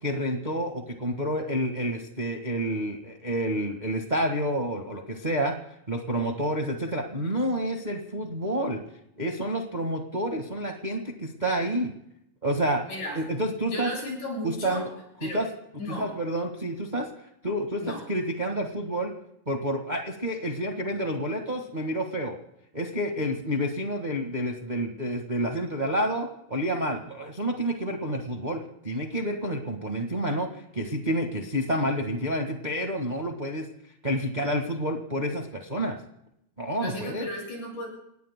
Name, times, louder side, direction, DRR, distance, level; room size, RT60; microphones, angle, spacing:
voice 1, 0.0-5.5 5.9-8.8 9.2-11.9 12.4-12.8 13.1-13.9 14.4-14.9 15.2-15.5 16.0-17.1 17.4-19.1 19.5-22.4 22.7-33.7 34.0-36.0 36.6-37.3, equal, 85° right, 3 dB, 0.4 m, -29 dB
voice 2, 12.9-13.2 13.7-14.9 15.2-15.4 15.8-16.1 17.8-18.0 36.8-37.9, left 1 dB, 60° left, -1 dB, 8.5 m, -34 dB
29.0 x 17.5 x 2.2 m, 0.76 s
omnidirectional pair, 4.0 m